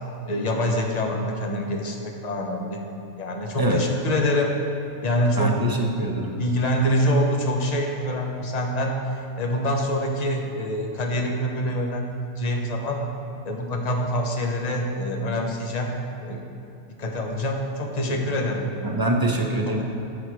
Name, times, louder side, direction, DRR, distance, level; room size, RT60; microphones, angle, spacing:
voice 1, 0.3-2.8 3.2-4.6 5.0-5.7 6.4-8.9 9.4-13.0 13.4-15.9 16.2-16.4 17.0-18.7 19.7-19.8, equal, 35° left, 1 dB, 0.9 m, -25 dB
voice 2, 5.4-6.3 18.0-18.2 18.8-19.8, right 1 dB, 20° right, 0 dB, 0.6 m, -24 dB
10.0 x 6.4 x 4.8 m, 2.8 s
omnidirectional pair, 1.4 m